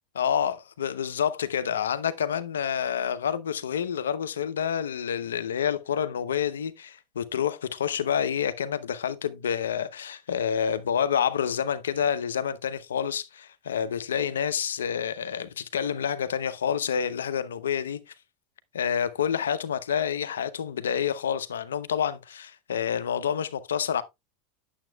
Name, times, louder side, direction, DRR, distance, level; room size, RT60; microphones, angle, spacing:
voice 1, 0.1-18.0 18.7-24.0, left 8 dB, 90° left, 0.7 m, -28 dB
8.9 x 7.2 x 2.3 m
hypercardioid pair, 100°, 0 cm